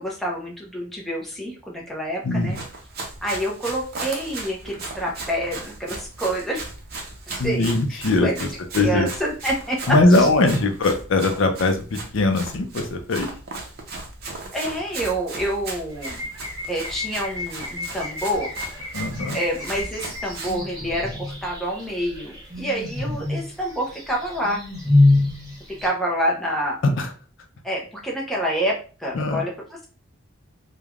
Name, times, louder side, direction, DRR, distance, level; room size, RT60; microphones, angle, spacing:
voice 1, 0.0-2.6 3.2-6.7 7.4-8.5 8.8-10.3 14.5-16.3 16.7-18.6 19.3-24.6 25.7-26.8 27.6-29.9, right 1 dB, ahead, -3 dB, 0.5 m, -27 dB
voice 2, 2.2-2.6 7.4-8.5 8.7-9.1 9.9-13.3 18.9-19.4 27.0-27.1 29.1-29.4, left 2 dB, 55° left, 5 dB, 0.4 m, -20 dB
Run, 2.4-20.6, right 3 dB, 45° right, 0.6 m, -37 dB
sound 1, 15.9-25.9, left 2 dB, 15° right, 1.0 m, -26 dB
3.2 x 2.1 x 2.3 m, 0.37 s
head